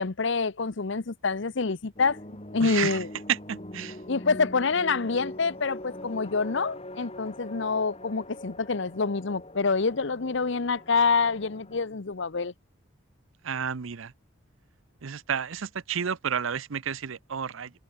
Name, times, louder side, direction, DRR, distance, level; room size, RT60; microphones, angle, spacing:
voice 1, 0.0-3.1 4.1-12.5, left 4 dB, 60° left, 0.8 m, -27 dB
sound 1, 2.0-11.8, left 1 dB, 30° left, 5.4 m, -43 dB
voice 2, 2.6-3.0 3.3-4.0 13.4-14.1 15.0-17.7, right 7 dB, 70° right, 0.7 m, -31 dB
open air
head